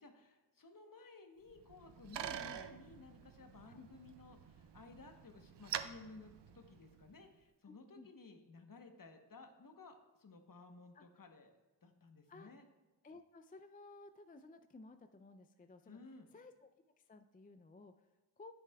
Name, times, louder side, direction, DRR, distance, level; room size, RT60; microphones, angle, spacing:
voice 1, 0.0-12.7 15.9-16.3, left 3 dB, 55° left, 5 dB, 1.0 m, -57 dB
Bicycle, 1.5-7.2, right 9 dB, 80° right, 0.5 m, -47 dB
voice 2, 2.2-2.6 3.7-3.9 7.9-8.1 10.9-11.0 12.3-12.5 13.0-16.0 16.3-16.7 17.0-18.5, left 3 dB, 20° left, 8 dB, 0.4 m, -56 dB
9.7 x 8.1 x 2.3 m, 1.2 s
wide cardioid pair, 60°, 41 cm